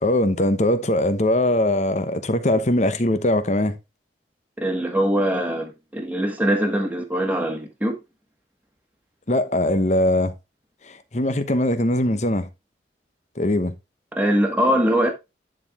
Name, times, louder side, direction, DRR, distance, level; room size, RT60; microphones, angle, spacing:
voice 1, 0.0-3.7 9.3-10.3 10.9-12.5 13.4-13.7, left 1 dB, 40° left, 0.9 m, -21 dB
voice 2, 4.6-8.0 14.1-15.1, equal, 10° right, 1.5 m, -22 dB
10.5 x 4.6 x 3.6 m
head